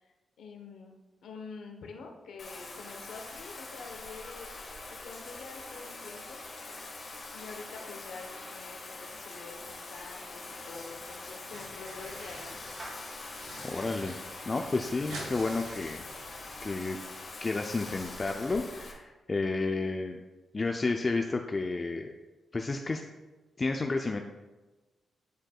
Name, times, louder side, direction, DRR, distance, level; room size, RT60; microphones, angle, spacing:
voice 1, 0.0-4.5 4.9-6.4 7.3-12.6, left 4 dB, 80° left, 3 dB, 0.9 m, -47 dB
Bathtub (filling or washing), 2.4-18.9, left 2 dB, 55° left, 1.7 m, -44 dB
sound 1, 10.5-11.0 11.3-12.6 13.0-14.1 14.4-14.5 14.7-16.6, right 2 dB, 90° right, 1.8 m, -47 dB
Clapping / Meow, 11.2-17.3, right 1 dB, 50° right, 1.8 m, -54 dB
voice 2, 13.6-14.2 14.5-16.0 16.6-17.0 17.4-20.2 20.5-22.1 22.5-23.0 23.6-24.2, left 3 dB, 35° left, 3 dB, 0.5 m, -31 dB
10.0 x 4.7 x 2.3 m, 1.2 s
cardioid pair, 60°, 0 cm